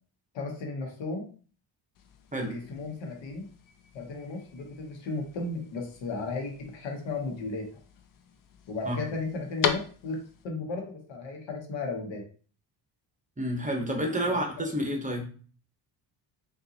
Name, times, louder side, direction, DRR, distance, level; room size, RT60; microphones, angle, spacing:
voice 1, 0.3-1.3 2.4-3.5 3.9-7.8 8.7-10.2 10.4-12.2 14.3-14.9, left 3 dB, 75° left, 2 dB, 1.1 m, -35 dB
sound 1, 1.9-10.4, left 8 dB, 50° left, 0.5 m, -39 dB
voice 2, 13.4-15.2, equal, 15° right, 2 dB, 0.9 m, -29 dB
3.7 x 2.6 x 2.8 m, 0.41 s
cardioid pair, 80°, 45 cm